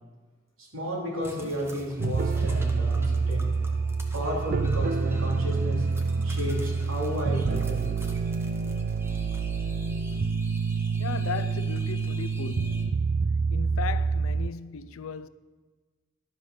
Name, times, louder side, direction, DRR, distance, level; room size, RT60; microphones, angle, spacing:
voice 1, 0.6-3.5 4.1-5.8 6.2-7.9, equal, 80° right, 3.1 m, -32 dB
sound 1, 1.2-12.8, equal, 10° right, 0.9 m, -46 dB
sound 2, 2.0-14.5, right 4 dB, 45° right, 0.3 m, -27 dB
voice 2, 11.0-12.9 13.5-15.3, left 6 dB, 80° left, 0.4 m, -36 dB
11.5 x 5.5 x 6.7 m
head